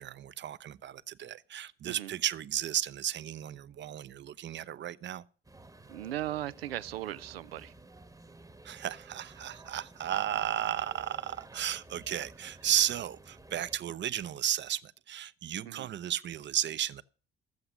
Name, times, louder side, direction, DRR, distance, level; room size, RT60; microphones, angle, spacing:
voice 1, 0.0-5.2 8.6-17.0, right 11 dB, 40° right, 0.7 m, -34 dB
sound 1, 5.4-13.8, right 2 dB, 10° right, 1.1 m, -53 dB
voice 2, 5.9-7.7 15.7-15.9, right 14 dB, 80° right, 0.5 m, -37 dB
14.0 x 7.8 x 6.3 m
figure-of-eight pair, 45°, 30 cm